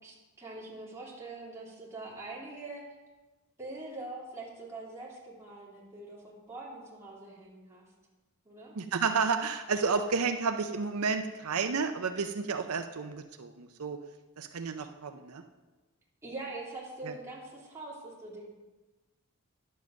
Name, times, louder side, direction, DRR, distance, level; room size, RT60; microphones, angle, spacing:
voice 1, 0.0-2.8 3.6-7.8 8.4-8.7 16.2-18.4, right 2 dB, 15° right, -5 dB, 2.9 m, -43 dB
voice 2, 8.8-14.0 14.4-15.4 17.0-17.1, right 5 dB, 75° right, 7 dB, 0.6 m, -31 dB
10.5 x 7.3 x 6.3 m, 1.2 s
head